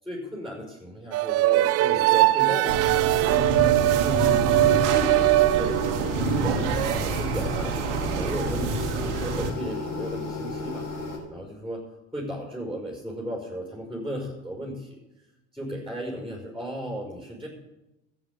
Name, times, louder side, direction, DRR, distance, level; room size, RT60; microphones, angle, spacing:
voice 1, 0.0-5.0 5.6-10.9 11.3-11.8 12.1-15.0 15.5-17.5, equal, ahead, -1 dB, 5.3 m, -35 dB
sound 1, 1.1-6.2, right 17 dB, 45° right, 0.5 m, -21 dB
sound 2, 2.7-9.5, right 4 dB, 85° right, 2.2 m, -27 dB
sound 3, 4.6-11.2, left 2 dB, 55° left, 7.0 m, -34 dB
13.5 x 8.4 x 8.5 m, 0.95 s
hypercardioid pair, 85°, 34 cm